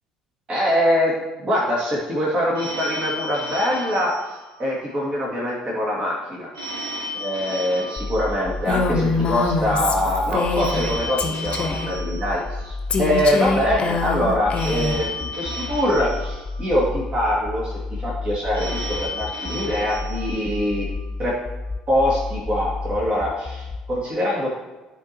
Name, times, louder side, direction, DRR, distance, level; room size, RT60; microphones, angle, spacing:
voice 1, 0.5-6.5 7.1-20.9 21.2-21.4 21.9-24.5, equal, 35° right, -4 dB, 2.2 m, -23 dB
Telephone, 2.5-5.0 6.5-9.0 10.5-13.0 14.5-17.0 18.5-21.0, equal, 70° right, 1.3 m, -34 dB
sound 1, 8.0-24.0, left 3 dB, 20° left, 0.3 m, -31 dB
Female speech woman speaking, 8.7-10.9 11.2-11.9 12.9-15.0, left 4 dB, 35° left, 1.0 m, -24 dB
13.0 x 4.6 x 3.0 m, 1.1 s
figure-of-eight pair, 55°, 3 cm